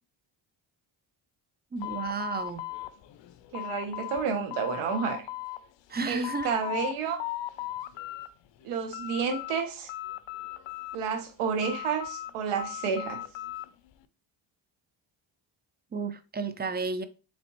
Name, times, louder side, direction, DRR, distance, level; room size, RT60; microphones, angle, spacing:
voice 1, 1.7-2.7 5.9-6.5 15.9-17.0, right 4 dB, 20° right, 0.4 m, -32 dB
sound 1, 1.8-4.3 4.5-5.6 6.0-6.9 7.2-8.3 8.6-9.6 9.9-11.2 11.6-13.7, left 15 dB, 65° left, 0.5 m, -37 dB
voice 2, 3.5-5.3 6.1-7.2 8.6-9.9 10.9-13.2, right 6 dB, 85° right, 1.0 m, -30 dB
4.0 x 3.3 x 2.9 m
cardioid pair, 75°, 49 cm